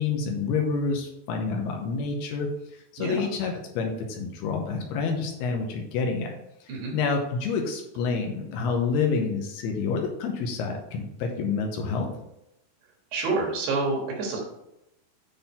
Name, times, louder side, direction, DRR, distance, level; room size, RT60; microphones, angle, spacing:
voice 1, 0.0-6.3 6.9-12.1, left 4 dB, 80° left, 2 dB, 2.7 m, -28 dB
voice 2, 13.1-14.4, right 3 dB, 70° right, -1 dB, 3.3 m, -28 dB
8.8 x 3.9 x 4.2 m, 0.86 s
omnidirectional pair, 4.9 m